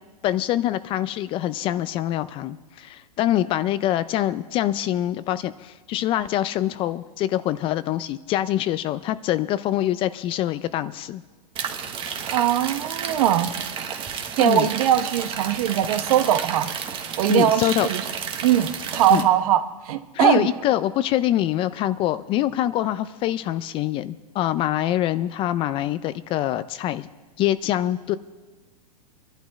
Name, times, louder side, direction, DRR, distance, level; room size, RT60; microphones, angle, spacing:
voice 1, 0.2-11.2 14.4-14.7 17.3-17.9 19.1-19.3 20.1-27.1 27.4-28.2, left 13 dB, 25° left, 14 dB, 0.4 m, -24 dB
sound 1, 11.6-19.2, right 7 dB, 25° right, 1.2 m, -31 dB
voice 2, 12.3-13.5 14.4-16.7 17.2-18.0 18.4-20.5, right 11 dB, 60° right, 10 dB, 1.1 m, -21 dB
25.5 x 11.5 x 4.1 m, 1.3 s
hypercardioid pair, 140°, 21 cm